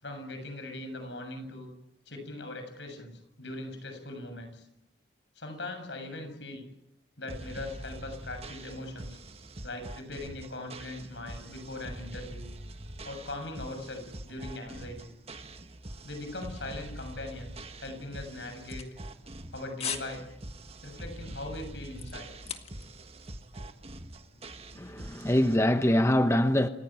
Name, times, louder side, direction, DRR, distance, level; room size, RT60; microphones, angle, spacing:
voice 1, 0.0-1.7 2.1-4.7 5.4-6.7 7.2-9.2 9.6-12.5 13.0-15.1 16.0-18.9 19.5-20.3 20.8-22.3, left 2 dB, 75° left, 7.2 m, -40 dB
sound 1, 7.3-25.6, right 1 dB, 35° right, 1.5 m, -44 dB
sound 2, 18.4-19.4 19.8-20.1 20.5-20.7 21.2-23.0 23.3-23.4, left 8 dB, 35° left, 2.0 m, -38 dB
voice 2, 24.8-26.7, left 1 dB, 15° left, 0.9 m, -24 dB
29.0 x 16.5 x 8.9 m
head